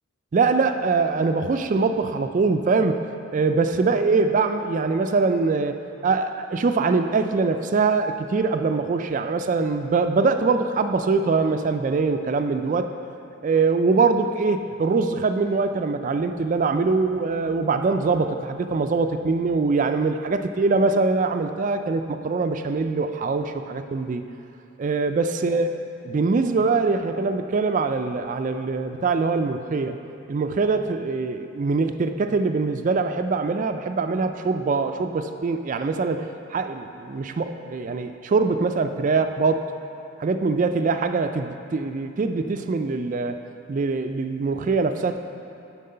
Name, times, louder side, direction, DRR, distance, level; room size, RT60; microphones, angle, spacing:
voice 1, 0.3-3.0 3.3-5.8 6.0-12.9 13.4-24.2 24.8-25.7 26.1-30.0 30.3-39.6 40.2-43.4 43.7-45.2, right 4 dB, 40° right, 8 dB, 0.3 m, -23 dB
10.0 x 4.6 x 5.5 m, 2.8 s
head